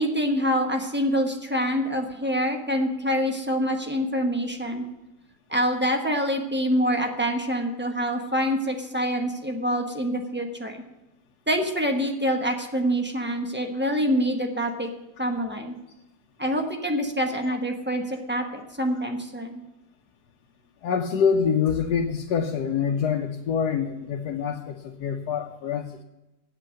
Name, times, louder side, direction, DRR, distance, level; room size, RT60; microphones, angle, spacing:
voice 1, 0.0-4.8 5.5-10.8 11.5-14.9 15.2-15.8 16.4-19.6, equal, 10° right, 4 dB, 1.0 m, -26 dB
voice 2, 20.8-26.0, left 6 dB, 85° left, 2 dB, 1.4 m, -25 dB
8.7 x 8.1 x 6.3 m, 0.99 s
omnidirectional pair, 1.7 m